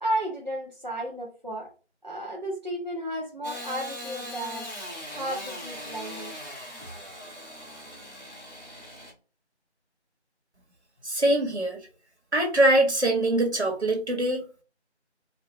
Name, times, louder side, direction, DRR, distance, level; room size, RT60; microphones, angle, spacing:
voice 1, 0.0-1.7 2.0-4.7 5.1-6.3, right 1 dB, 40° right, 0.8 m, -33 dB
Engine starting / Sawing, 3.4-9.1, left 1 dB, 40° left, 1.6 m, -40 dB
voice 2, 11.0-11.8 12.3-14.6, right 1 dB, 70° right, 1.6 m, -23 dB
4.2 x 2.7 x 3.3 m
figure-of-eight pair, 180°, 34 cm